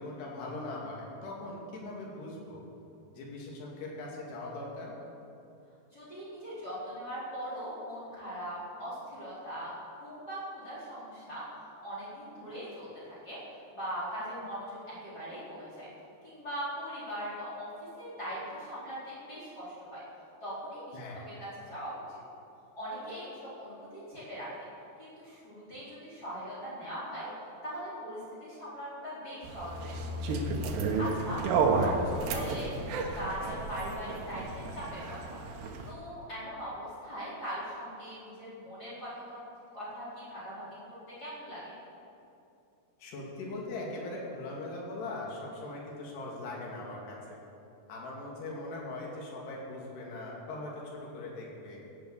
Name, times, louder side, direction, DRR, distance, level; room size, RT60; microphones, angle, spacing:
voice 1, 0.0-2.6 3.1-4.9 20.9-21.3 31.7-31.9 32.3-32.6 43.0-47.4 47.9-51.8, left 2 dB, 75° left, -3 dB, 4.5 m, -40 dB
voice 2, 5.9-11.4 11.8-13.4 13.7-15.9 16.2-17.7 18.0-20.0 20.4-21.0 21.3-22.2 22.7-24.5 25.0-27.3 27.6-30.4 30.8-32.7 33.1-35.4 35.8-39.4 39.7-41.8, equal, 20° left, -10 dB, 4.8 m, -40 dB
sound 1, 29.4-35.9, right 3 dB, 80° right, 3.4 m, -32 dB
16.5 x 9.6 x 7.4 m, 2.7 s
omnidirectional pair, 4.9 m